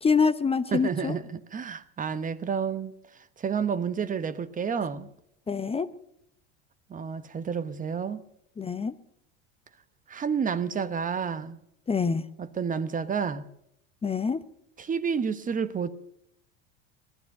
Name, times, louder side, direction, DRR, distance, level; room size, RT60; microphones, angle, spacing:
voice 1, 0.0-1.2 5.5-5.9 8.6-8.9 11.9-12.2 14.0-14.4, left 5 dB, 20° left, 0.8 m, -25 dB
voice 2, 0.7-2.9 3.4-5.1 6.9-8.2 10.1-11.6 12.4-13.4 14.8-15.9, right 6 dB, 25° right, 1.0 m, -30 dB
18.0 x 12.0 x 6.7 m
supercardioid pair, 100°, 32 cm